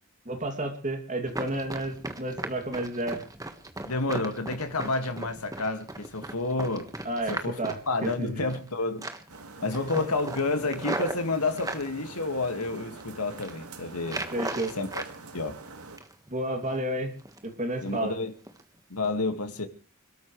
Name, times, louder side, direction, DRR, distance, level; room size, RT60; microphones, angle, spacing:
voice 1, 0.2-3.2 7.0-8.4 14.3-14.7 16.3-17.1 17.4-18.2, right 1 dB, 35° right, 2.7 m, -31 dB
Run, 1.3-8.7 9.0-9.4 9.7-11.9 12.4-13.0 13.3-13.6 14.0-15.1 15.5-16.3 16.6-16.8 17.2-17.5 17.9-18.0 18.5-18.6 19.0-19.1, right 2 dB, 15° right, 1.5 m, -37 dB
voice 2, 3.8-6.9 7.3-7.6 7.9-9.1 9.6-14.3 14.8-15.0 15.3-15.6 17.8-18.3 18.9-19.7, left 3 dB, 85° left, 2.0 m, -30 dB
sound 1, 9.3-16.0, right 3 dB, 80° right, 2.0 m, -45 dB
26.5 x 13.5 x 3.3 m
head